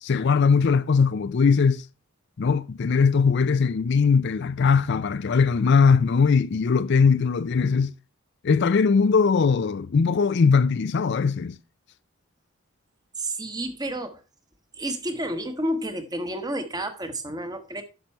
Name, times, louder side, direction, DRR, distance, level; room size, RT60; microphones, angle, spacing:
voice 1, 0.0-1.9 2.4-7.9 8.4-11.6, left 5 dB, 50° left, 0.4 m, -20 dB
voice 2, 13.2-14.2 14.7-17.8, right 1 dB, 15° right, 1.1 m, -30 dB
10.5 x 6.7 x 4.4 m
head